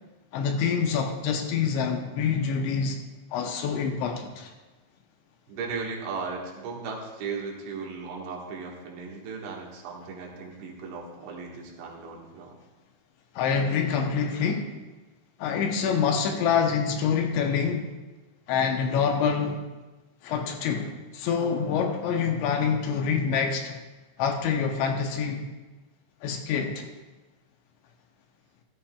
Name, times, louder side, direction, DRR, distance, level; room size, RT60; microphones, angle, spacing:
voice 1, 0.3-3.0 3.3-4.5 13.4-14.7 15.4-17.9 18.5-19.6 20.2-23.8 24.2-25.5 26.2-26.9, left 6 dB, 80° left, 4 dB, 3.0 m, -26 dB
voice 2, 5.5-12.6, right 4 dB, 75° right, -2 dB, 3.9 m, -36 dB
13.5 x 13.5 x 2.3 m, 1.2 s
omnidirectional pair, 5.4 m